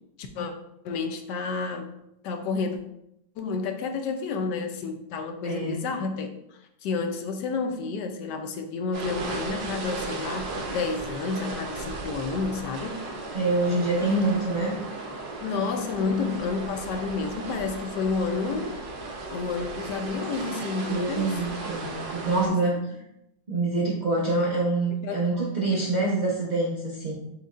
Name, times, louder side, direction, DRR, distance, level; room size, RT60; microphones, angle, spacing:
voice 1, 0.2-0.5 0.8-1.9 2.2-2.8 3.4-6.3 6.8-13.0 15.4-18.8 19.3-21.4 22.4-22.8 25.0-25.3 25.7-25.8, left 4 dB, 75° left, 6 dB, 1.2 m, -30 dB
voice 2, 5.4-5.8 13.3-14.7 20.9-22.8 23.5-27.1, right 2 dB, 45° right, -5 dB, 0.6 m, -25 dB
sound 1, 8.9-22.5, right 3 dB, 80° right, 1.5 m, -35 dB
5.1 x 4.1 x 2.4 m, 0.80 s
omnidirectional pair, 1.9 m